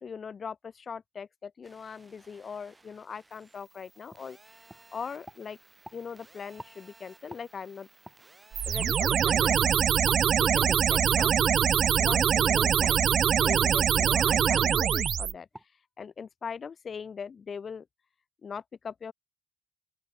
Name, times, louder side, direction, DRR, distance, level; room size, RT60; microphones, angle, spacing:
voice 1, 0.0-4.5 4.9-5.6 5.9-7.9 8.7-9.8 10.4-11.3 12.0-13.0 13.4-15.5 16.0-17.9 18.4-19.1, left 6 dB, 45° left, 0.7 m, -40 dB
sound 1, 1.6-9.6, right 2 dB, 20° right, 6.9 m, -58 dB
sound 2, 4.1-4.2 4.7-4.8 5.2-6.0 6.5-6.7 7.3-7.4 8.0-8.2 8.8-8.9 9.5-9.6 10.1-10.2 10.6-10.8 11.2-11.3 11.8-12.0 12.8-13.0 13.5-13.7 14.0-14.2 14.5-14.7 15.0-15.2 15.5-15.6, equal, 5° right, 1.1 m, -46 dB
sound 3, 8.5-15.3, right 8 dB, 60° right, 0.3 m, -23 dB
open air
cardioid pair, 90°, 0 cm